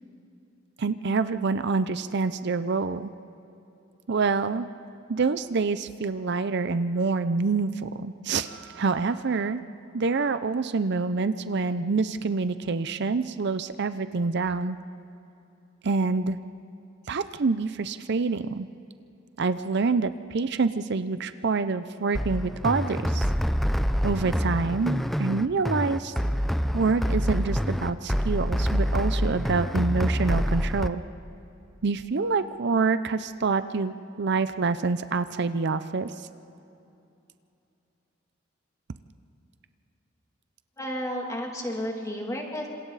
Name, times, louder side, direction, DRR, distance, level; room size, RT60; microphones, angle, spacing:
voice 1, 0.8-3.1 4.1-4.7 5.1-9.6 9.9-14.8 15.8-16.4 17.1-18.7 19.4-23.3 24.0-26.1 26.7-31.0 31.8-36.1, right 4 dB, 60° right, 12 dB, 0.6 m, -26 dB
sound 1, 22.1-30.9, equal, ahead, 0.5 m, -26 dB
voice 2, 40.8-42.7, equal, 15° left, 0 dB, 2.8 m, -32 dB
29.0 x 26.5 x 4.1 m, 2.8 s
head